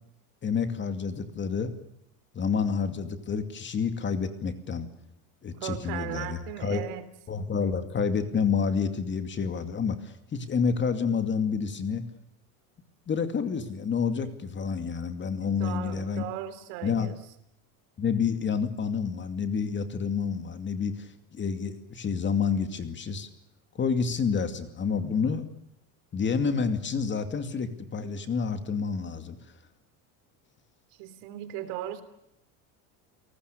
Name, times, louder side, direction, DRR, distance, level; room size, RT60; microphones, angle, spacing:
voice 1, 0.4-1.7 2.3-4.9 5.4-6.9 7.3-12.0 13.1-16.2 16.8-17.1 18.0-23.3 23.8-25.4 26.1-29.4, left 6 dB, 25° left, 9 dB, 2.5 m, -29 dB
voice 2, 5.6-7.0 15.4-17.2 31.0-32.0, right 12 dB, 70° right, 12 dB, 3.4 m, -37 dB
29.5 x 19.0 x 6.8 m, 0.79 s
supercardioid pair, 135°, 43 cm